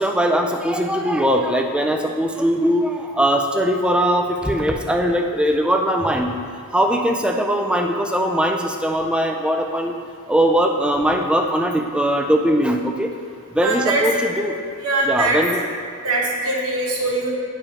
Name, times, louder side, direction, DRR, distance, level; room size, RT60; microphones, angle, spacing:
voice 1, 0.0-6.4 6.7-9.9 10.3-13.1 13.5-14.6 15.0-15.6, equal, 5° right, 3 dB, 0.3 m, -20 dB
voice 2, 13.6-14.1 14.8-15.4 16.0-17.3, right 2 dB, 85° right, -4 dB, 1.3 m, -22 dB
10.0 x 4.9 x 2.9 m, 2.2 s
head